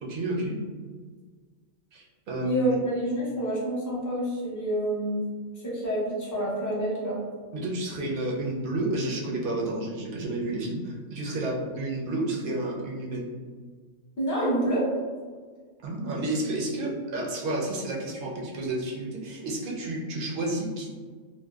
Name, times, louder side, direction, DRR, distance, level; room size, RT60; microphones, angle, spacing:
voice 1, 0.0-0.6 1.9-2.8 7.5-13.3 15.8-20.9, right 1 dB, 60° right, -2 dB, 0.6 m, -31 dB
voice 2, 2.4-5.2 5.5-7.2 14.2-14.9, right 1 dB, 25° left, -6 dB, 0.4 m, -27 dB
2.7 x 2.1 x 2.2 m, 1.5 s
omnidirectional pair, 1.2 m